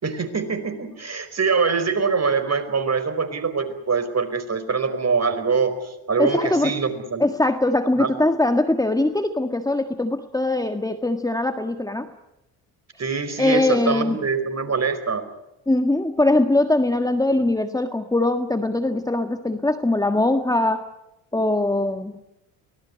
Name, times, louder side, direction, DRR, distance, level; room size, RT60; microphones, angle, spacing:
voice 1, 0.0-7.2 8.0-8.1 13.0-15.2, right 5 dB, 30° right, 9 dB, 4.8 m, -24 dB
voice 2, 6.2-6.7 7.2-12.1 13.4-14.2 15.7-20.8 21.3-22.2, left 2 dB, 5° left, 7 dB, 1.6 m, -21 dB
24.0 x 19.0 x 9.8 m, 0.89 s
hypercardioid pair, 65°, 50 cm